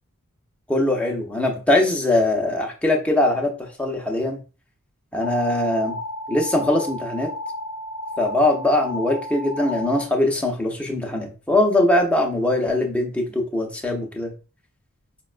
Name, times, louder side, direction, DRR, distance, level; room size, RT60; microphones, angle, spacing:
voice 1, 0.7-4.4 5.1-6.0 6.3-7.3 8.2-14.3, left 1 dB, 5° left, 1 dB, 0.6 m, -21 dB
sound 1, 5.2-10.0, left 1 dB, 50° right, 0.8 m, -33 dB
5.0 x 2.2 x 2.4 m, 0.34 s
head